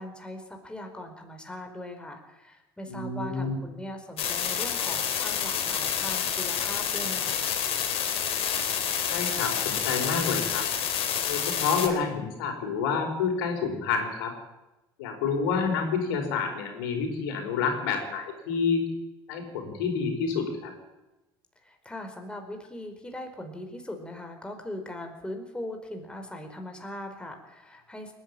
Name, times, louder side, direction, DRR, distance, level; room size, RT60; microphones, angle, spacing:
voice 1, 0.0-7.4 21.6-28.1, left 1 dB, 10° left, 4 dB, 4.8 m, -40 dB
voice 2, 2.9-3.6 9.1-10.7 11.3-14.3 15.0-18.8 19.3-20.7, left 5 dB, 70° left, 3 dB, 4.8 m, -28 dB
sound 1, 4.2-11.9, left 8 dB, 50° left, 4.1 m, -28 dB
29.0 x 10.5 x 9.0 m, 1.0 s
figure-of-eight pair, 60°, 13 cm